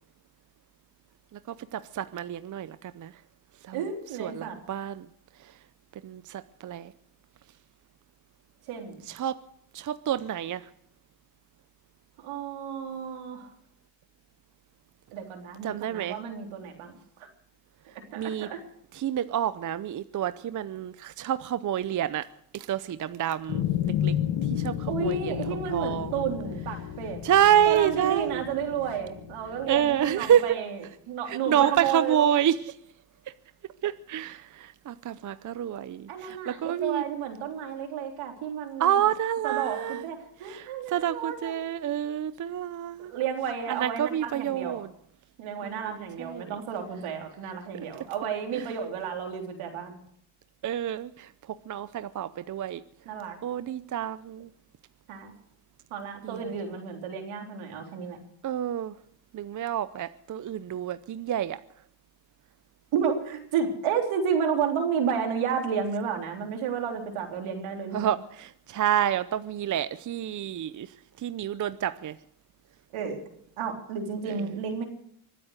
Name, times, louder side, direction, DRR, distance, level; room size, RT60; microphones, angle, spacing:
voice 1, 1.7-3.1 3.7-3.8 4.2-5.1 6.0-6.9 9.1-9.4 9.7-10.6 15.6-16.2 18.2-18.5 18.9-22.3 22.5-24.1 24.5-26.1 27.2-28.4 29.7-30.4 31.3-32.6 33.8-37.0 38.8-40.0 40.5-43.1 43.7-44.9 45.6-45.9 46.2-46.5 48.0-48.1 48.5-48.6 50.6-51.3 51.7-52.8 53.4-54.5 56.2-56.4 58.4-58.9 59.3-61.6 67.9-70.9 71.2-72.1, right 10 dB, 40° right, 14 dB, 0.7 m, -28 dB
voice 2, 3.7-4.6 8.7-9.0 12.2-13.5 15.1-16.9 17.2-17.3 18.1-18.6 24.9-27.2 27.7-32.3 36.1-39.0 39.4-41.6 43.0-44.9 45.4-50.0 53.1-53.4 55.1-55.3 55.9-58.2 62.9-68.1 72.9-73.2 73.6-74.8, right 7 dB, 80° right, 3 dB, 3.7 m, -32 dB
sound 1, 23.5-30.1, left 11 dB, 70° left, 1.5 m, -32 dB
24.5 x 8.6 x 6.5 m, 0.68 s
cardioid pair, 95°, 49 cm